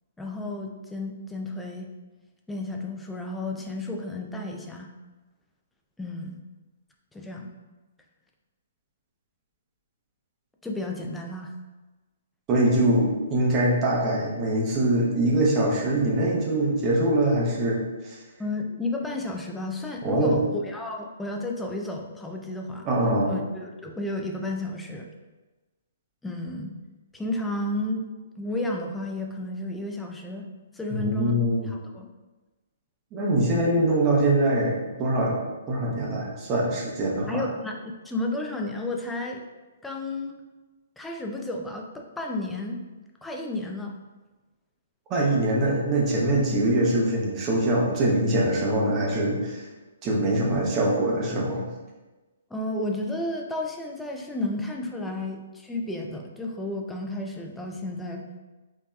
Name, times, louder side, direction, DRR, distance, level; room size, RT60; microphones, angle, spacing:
voice 1, 0.2-1.9 2.5-4.9 6.0-6.4 7.1-7.5 10.6-11.6 18.4-22.9 23.2-25.1 26.2-26.7 27.1-28.0 28.4-30.4 30.7-31.4 31.7-32.1 37.3-37.8 38.0-39.4 39.8-40.4 41.0-42.8 43.2-43.9 52.5-58.3, left 2 dB, 5° left, 1 dB, 0.3 m, -32 dB
voice 2, 12.5-18.2 20.0-20.4 22.8-23.3 30.9-31.7 33.1-35.4 35.7-37.4 45.1-49.7 50.0-51.6, right 1 dB, 20° right, -3 dB, 0.7 m, -23 dB
5.1 x 2.8 x 2.3 m, 1.2 s
hypercardioid pair, 165°, 0 cm